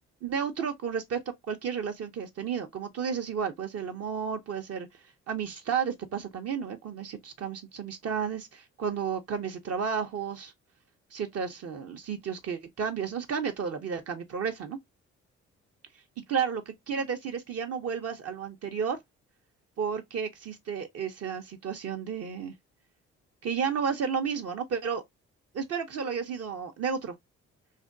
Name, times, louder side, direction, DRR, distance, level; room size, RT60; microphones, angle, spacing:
voice 1, 0.2-1.2 1.5-4.9 5.3-10.5 11.1-14.8 16.3-16.6 16.9-19.0 19.8-22.5 23.4-25.0 25.5-27.1, right 6 dB, 55° right, 0.6 m, -32 dB
3.3 x 2.2 x 2.4 m
supercardioid pair, 65°, 30 cm